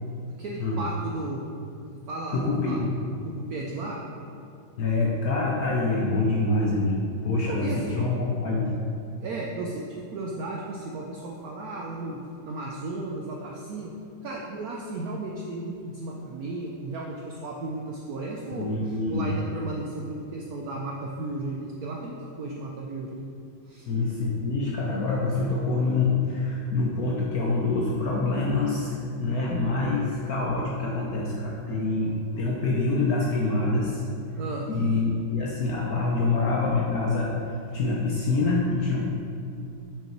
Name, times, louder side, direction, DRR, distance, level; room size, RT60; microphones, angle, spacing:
voice 1, 0.4-1.5 1.8-2.8 3.3-4.0 7.5-8.1 9.2-23.3 23.7-23.9 34.4-34.7, right 2 dB, 65° right, -2 dB, 0.9 m, -35 dB
voice 2, 2.3-2.9 4.8-8.8 18.6-19.3 23.9-34.0 34.7-37.3 37.7-39.0, left 3 dB, 65° left, -3 dB, 1.0 m, -26 dB
5.8 x 5.5 x 4.4 m, 2.5 s
omnidirectional pair, 2.0 m